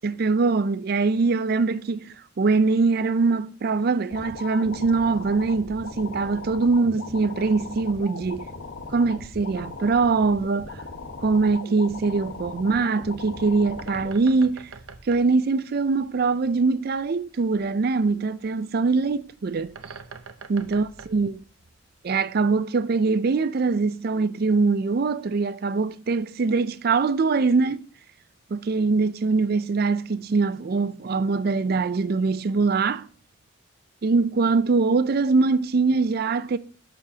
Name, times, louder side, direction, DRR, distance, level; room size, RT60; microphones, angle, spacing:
voice 1, 0.0-8.5 8.9-10.8 11.2-14.7 15.1-19.8 20.5-21.4 22.0-27.9 28.5-33.1 34.0-36.6, right 4 dB, 45° right, 0.4 m, -23 dB
sound 1, 4.1-14.1, left 3 dB, 80° left, 1.3 m, -38 dB
Bird, 13.7-22.1, right 4 dB, 85° right, 0.7 m, -46 dB
11.5 x 6.9 x 2.8 m
head